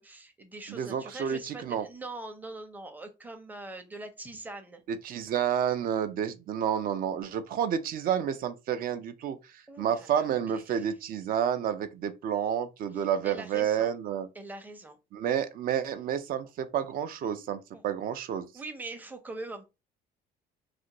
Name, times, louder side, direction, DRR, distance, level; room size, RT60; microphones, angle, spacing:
voice 1, 0.0-4.8 9.7-10.9 12.9-13.9 14.3-15.0 17.7-17.8 18.5-19.6, right 2 dB, 10° right, 0.6 m, -43 dB
voice 2, 0.7-1.8 5.0-9.4 9.8-14.3 15.1-18.5, right 9 dB, 60° right, 0.5 m, -30 dB
2.5 x 2.4 x 2.9 m
cardioid pair, 110°, 17 cm